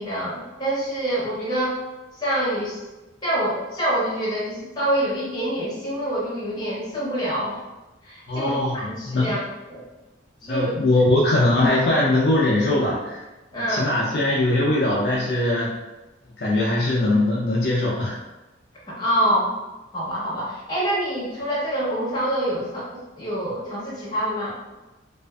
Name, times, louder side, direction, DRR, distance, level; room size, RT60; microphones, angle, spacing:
voice 1, 0.0-1.7 2.2-2.8 3.2-7.6 8.0-9.4 9.7-9.8 10.4-10.7 13.5-13.9 18.9-19.5 19.9-22.9 23.2-24.5, right 1 dB, 20° left, -7 dB, 0.8 m, -26 dB
voice 2, 8.3-9.4 10.4-13.2 13.7-15.7 16.4-18.2, left 2 dB, 60° left, -5 dB, 0.4 m, -21 dB
2.4 x 2.4 x 2.3 m, 1.1 s
head